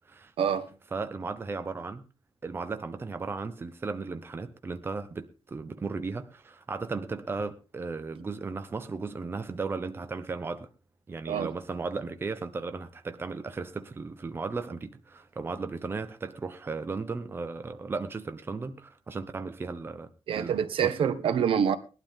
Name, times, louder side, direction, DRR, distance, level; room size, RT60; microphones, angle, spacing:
voice 1, 0.4-0.7 11.3-11.5 20.3-21.8, right 8 dB, 65° right, 1.4 m, -26 dB
voice 2, 0.9-2.0 2.4-10.7 11.1-20.9, right 4 dB, 25° right, 0.9 m, -36 dB
19.5 x 12.0 x 3.7 m
wide cardioid pair, 170°, 10 cm